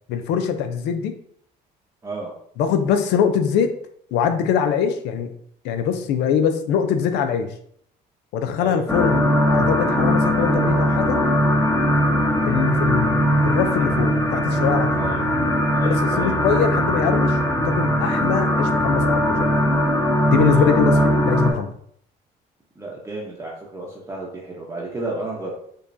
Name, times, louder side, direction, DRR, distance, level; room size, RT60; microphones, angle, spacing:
voice 1, 0.1-1.1 2.6-3.7 4.1-5.3 5.6-7.5 8.3-11.2 12.4-15.0 15.8-19.5 20.3-21.7, left 7 dB, 85° left, 8 dB, 0.5 m, -23 dB
voice 2, 8.6-9.0 15.0-15.3 15.7-16.6 20.5-21.1 22.8-25.5, right 2 dB, 15° right, -4 dB, 0.7 m, -32 dB
sound 1, 8.9-21.5, equal, 15° left, 0.9 m, -20 dB
sound 2, 12.1-19.3, equal, 55° right, 1.0 m, -36 dB
5.1 x 2.3 x 2.6 m, 0.65 s
cardioid pair, 110°, 17 cm